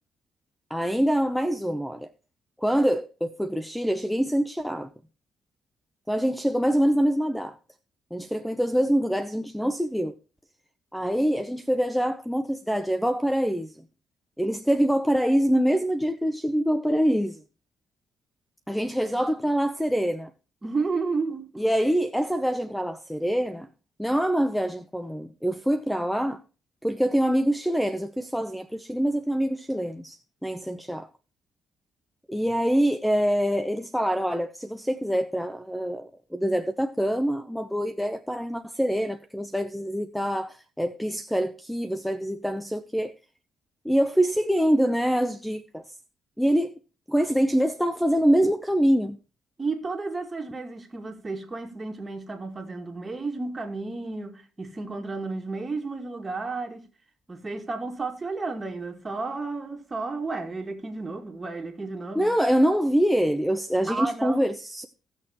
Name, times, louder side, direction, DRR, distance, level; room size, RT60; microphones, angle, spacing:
voice 1, 0.7-2.1 2.6-4.9 6.1-7.6 8.1-10.2 10.9-13.7 14.4-17.4 18.7-20.3 21.6-23.7 24.0-26.4 26.8-31.1 32.3-43.1 43.8-45.8 46.4-46.7 47.1-49.2 62.2-64.9, equal, ahead, 0.6 m, -25 dB
voice 2, 20.6-21.6 49.6-56.9 57.3-62.3 63.9-64.5, right 3 dB, 25° right, 2.3 m, -32 dB
16.5 x 6.5 x 2.9 m
cardioid pair, 90°, 0 cm